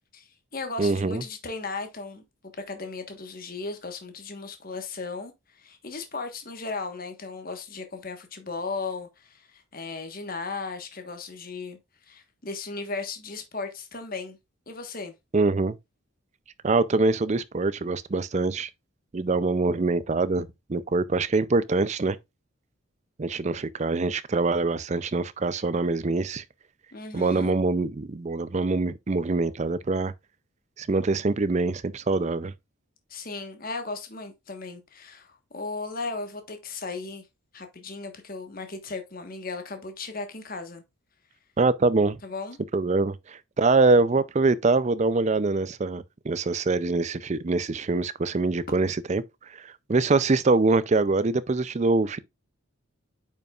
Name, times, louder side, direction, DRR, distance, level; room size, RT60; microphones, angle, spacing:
voice 1, 0.1-2.2 2.7-11.8 12.1-14.4 14.7-15.1 26.9-27.5 33.1-37.3 37.5-40.8 42.2-42.6, left 3 dB, 40° left, 1.3 m, -36 dB
voice 2, 0.8-1.2 15.3-15.8 16.6-18.7 19.1-22.2 23.2-26.4 27.1-30.1 30.8-32.5 41.6-42.2 42.7-52.2, right 3 dB, 30° right, 0.4 m, -24 dB
9.0 x 5.4 x 2.4 m
head